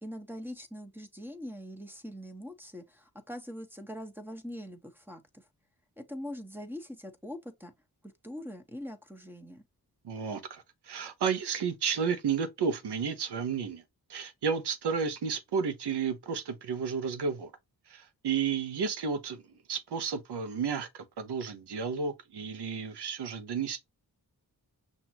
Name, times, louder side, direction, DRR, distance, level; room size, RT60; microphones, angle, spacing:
voice 1, 0.0-5.4 6.0-7.7 8.0-9.6, equal, 5° right, 1.2 m, -43 dB
voice 2, 10.0-13.8 14.1-17.5 17.9-23.8, right 6 dB, 80° right, 1.0 m, -32 dB
6.1 x 2.8 x 2.8 m
cardioid pair, 55°, 40 cm